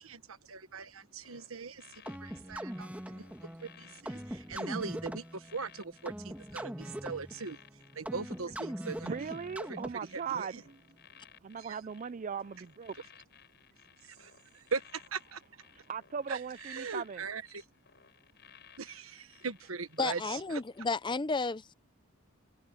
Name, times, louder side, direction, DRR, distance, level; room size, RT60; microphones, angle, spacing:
voice 1, 0.0-3.3 3.6-9.3 9.6-10.6 11.6-11.8 12.9-13.0 14.0-15.4 16.3-17.6 18.8-20.6, right 5 dB, 80° right, 1.3 m, -41 dB
sound 1, 1.2-20.4 20.7-21.0, left 8 dB, 55° left, 5.5 m, -60 dB
sound 2, 2.1-10.3, equal, 5° right, 2.1 m, -42 dB
voice 2, 9.0-10.5 11.4-12.9 15.9-17.2, right 6 dB, 35° right, 0.4 m, -38 dB
voice 3, 20.0-21.7, left 4 dB, 20° left, 0.6 m, -32 dB
head